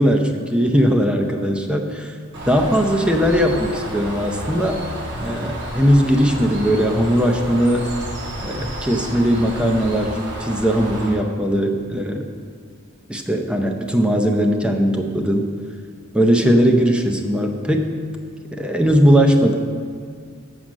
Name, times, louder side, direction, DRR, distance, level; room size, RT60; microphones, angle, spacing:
voice 1, 0.0-2.1 2.5-4.8 5.2-7.9 8.4-12.2 13.1-15.5 16.1-17.9 18.5-19.5, equal, 5° right, 3 dB, 0.6 m, -19 dB
Bird, 2.3-11.1, right 1 dB, 55° right, 1.6 m, -31 dB
7.4 x 6.4 x 6.2 m, 2.1 s
head